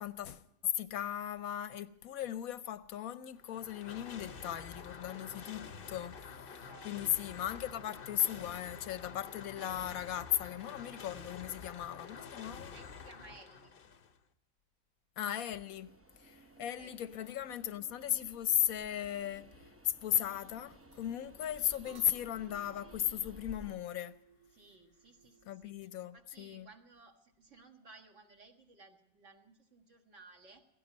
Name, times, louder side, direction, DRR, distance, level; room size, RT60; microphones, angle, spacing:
voice 1, 0.0-12.7 15.2-15.9 16.2-19.5 19.8-24.1 25.5-26.7, left 11 dB, 65° left, 1.0 m, -37 dB
sound 1, 3.3-14.2, left 5 dB, 45° left, 0.8 m, -48 dB
voice 2, 6.5-7.3 12.7-13.8 16.8-17.5 21.2-21.5 24.5-30.6, right 3 dB, 45° right, 2.0 m, -59 dB
Train, 15.6-23.8, equal, 20° right, 0.4 m, -57 dB
sound 2, 19.3-25.9, right 7 dB, 70° right, 1.6 m, -63 dB
17.0 x 16.5 x 5.1 m
omnidirectional pair, 1.8 m